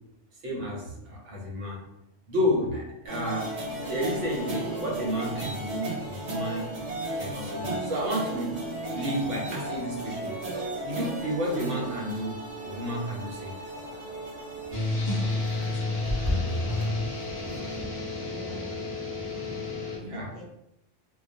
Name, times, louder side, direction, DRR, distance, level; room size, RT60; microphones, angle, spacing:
voice 1, 0.4-1.8 2.3-6.7 7.2-8.6 8.9-10.3 10.8-13.5 20.0-20.3, equal, 75° right, -3 dB, 1.1 m, -31 dB
sound 1, 3.1-17.8, right 2 dB, 45° right, 0.7 m, -35 dB
sound 2, 14.7-20.0, left 2 dB, 35° left, 0.4 m, -30 dB
voice 2, 16.2-17.4 18.3-18.9 20.1-20.5, left 1 dB, 60° left, -2 dB, 0.7 m, -47 dB
2.3 x 2.2 x 2.6 m, 0.83 s
omnidirectional pair, 1.3 m